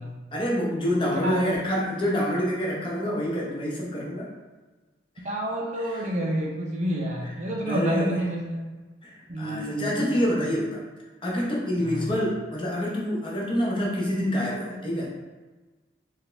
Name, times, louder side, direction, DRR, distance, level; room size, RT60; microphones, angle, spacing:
voice 1, 0.3-4.3 5.8-6.0 7.2-7.3 7.6-8.2 9.0-10.8 11.2-15.1, equal, 25° left, -4 dB, 0.7 m, -27 dB
voice 2, 5.2-8.6 9.3-10.1 10.4-10.5 11.8-12.1, equal, 40° right, -1 dB, 0.5 m, -29 dB
4.0 x 2.5 x 3.3 m, 1.3 s
head